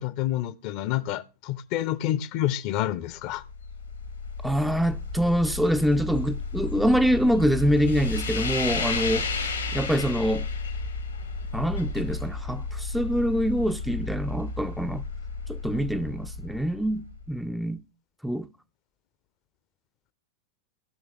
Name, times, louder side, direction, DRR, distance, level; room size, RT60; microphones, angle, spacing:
voice 1, 0.0-3.4, left 13 dB, 45° left, 0.7 m, -28 dB
sound 1, 3.2-17.4, left 3 dB, 75° left, 1.6 m, -32 dB
voice 2, 4.4-9.3 9.7-10.5 11.5-15.0 15.5-17.8 18.2-18.5, equal, ahead, 0.4 m, -25 dB
18.0 x 6.2 x 3.6 m
figure-of-eight pair, 90°, 0 cm